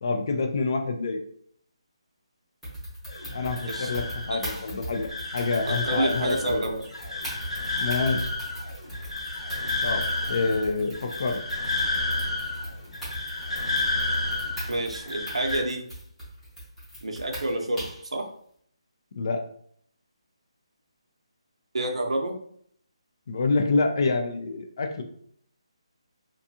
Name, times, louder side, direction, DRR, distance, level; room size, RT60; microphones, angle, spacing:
voice 1, 0.0-1.2 3.3-6.7 7.7-8.3 9.8-11.4 19.1-19.4 23.3-25.0, left 3 dB, 45° left, 5 dB, 0.4 m, -27 dB
sound 1, 2.6-18.1, equal, ahead, 0.7 m, -40 dB
sound 2, 3.1-15.6, left 2 dB, 90° left, 1.3 m, -31 dB
voice 2, 5.7-6.8 14.7-15.8 17.0-18.2 21.7-22.3, right 1 dB, 90° right, 2 dB, 0.6 m, -28 dB
2.6 x 2.3 x 2.6 m, 0.64 s
hypercardioid pair, 170°, 3 cm